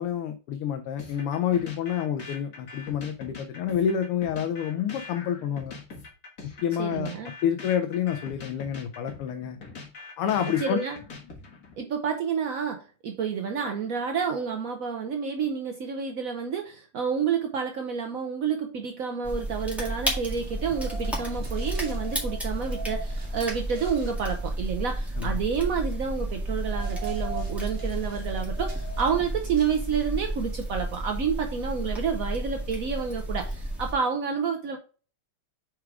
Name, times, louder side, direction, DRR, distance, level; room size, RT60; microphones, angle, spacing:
voice 1, 0.0-5.7 6.6-7.1 7.4-9.6 10.2-10.8 25.2-25.4, left 9 dB, 85° left, 1.6 m, -28 dB
sound 1, 1.0-11.8, left 4 dB, 45° left, 2.0 m, -43 dB
voice 2, 6.8-7.3 10.6-11.0 11.8-34.8, right 6 dB, 80° right, 0.7 m, -29 dB
sound 2, 19.2-33.9, right 1 dB, ahead, 1.5 m, -32 dB
sound 3, 20.4-30.3, right 3 dB, 45° right, 2.0 m, -43 dB
4.8 x 4.8 x 4.6 m
omnidirectional pair, 2.4 m